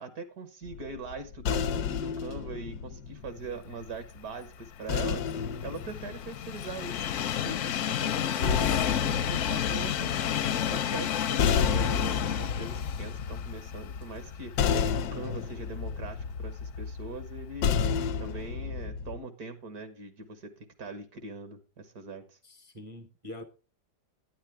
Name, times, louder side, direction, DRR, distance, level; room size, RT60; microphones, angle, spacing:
voice 1, 0.0-17.7 18.2-22.4, right 3 dB, 65° right, 1.6 m, -42 dB
sound 1, 0.7-4.0 4.9-7.2 8.1-19.2, left 6 dB, 80° left, 1.3 m, -31 dB
Train, 4.7-14.9 15.3-15.4 16.5-16.6, left 10 dB, 65° left, 0.8 m, -31 dB
voice 2, 22.4-23.4, left 1 dB, 35° right, 0.5 m, -44 dB
10.5 x 9.7 x 3.4 m
omnidirectional pair, 1.8 m